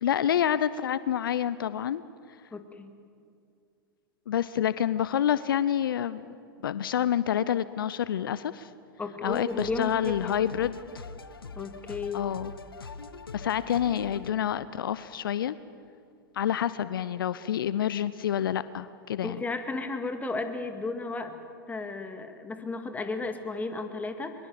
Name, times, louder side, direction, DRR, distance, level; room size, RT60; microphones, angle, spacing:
voice 1, 0.0-2.0 4.3-6.3 6.6-8.7 9.2-10.8 12.1-12.5 13.3-15.6 16.3-19.4, left 10 dB, 70° left, 16 dB, 0.6 m, -28 dB
voice 2, 2.5-3.0 9.0-10.4 11.6-12.2 19.2-21.4 21.7-24.3, left 3 dB, 15° left, 7 dB, 2.2 m, -34 dB
sound 1, 9.3-14.3, left 4 dB, 90° left, 1.1 m, -43 dB
22.5 x 22.0 x 7.7 m, 2.4 s
hypercardioid pair, 100°, 12 cm